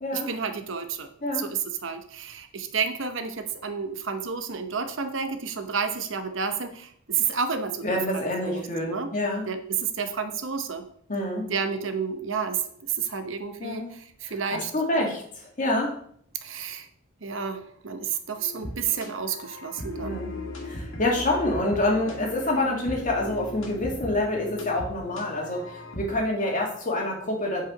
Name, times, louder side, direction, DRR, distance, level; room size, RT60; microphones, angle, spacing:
voice 1, 0.1-1.1 1.3-9.1 9.5-10.9 11.5-14.7 15.0-15.1 16.4-16.9 17.2-20.2, right 6 dB, 65° right, 8 dB, 0.9 m, -31 dB
voice 2, 7.8-9.4 11.1-11.5 13.6-13.9 14.2-15.2 15.6-16.0 20.0-20.3 20.6-27.7, left 1 dB, 40° left, 0 dB, 2.0 m, -27 dB
sound 1, 18.4-26.2, left 1 dB, 75° left, 2.0 m, -38 dB
8.6 x 4.9 x 5.0 m, 0.63 s
head